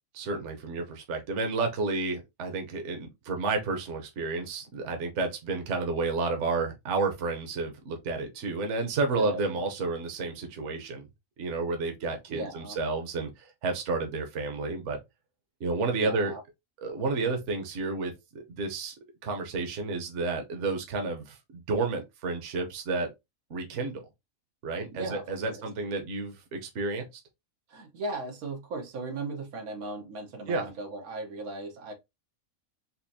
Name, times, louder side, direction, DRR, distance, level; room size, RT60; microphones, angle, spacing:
voice 1, 0.1-11.1 11.4-15.0 15.6-16.3 16.8-18.9 19.2-23.1 23.5-24.0 24.6-27.1 30.5-30.7, right 3 dB, 60° right, 1.1 m, -31 dB
voice 2, 9.2-9.6 12.3-12.8 15.9-16.4 24.9-25.6 27.7-31.9, right 2 dB, 90° right, 1.4 m, -37 dB
4.3 x 2.6 x 2.6 m
omnidirectional pair, 1.5 m